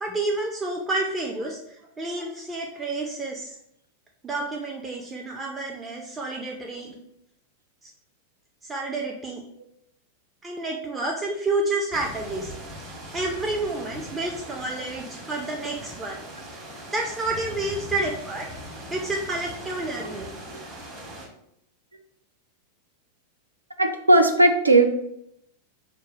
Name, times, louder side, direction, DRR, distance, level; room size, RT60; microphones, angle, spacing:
voice 1, 0.0-3.6 4.2-7.0 7.8-7.9 8.6-9.4 10.4-12.5 13.1-16.2 16.9-18.5 18.9-20.3, right 2 dB, 15° right, 0 dB, 0.4 m, -29 dB
sound 1, 11.9-21.3, equal, 40° right, 1.0 m, -40 dB
voice 2, 23.8-24.9, right 2 dB, 80° right, 6 dB, 0.4 m, -17 dB
3.1 x 2.1 x 3.9 m, 0.76 s
figure-of-eight pair, 90°, 0 cm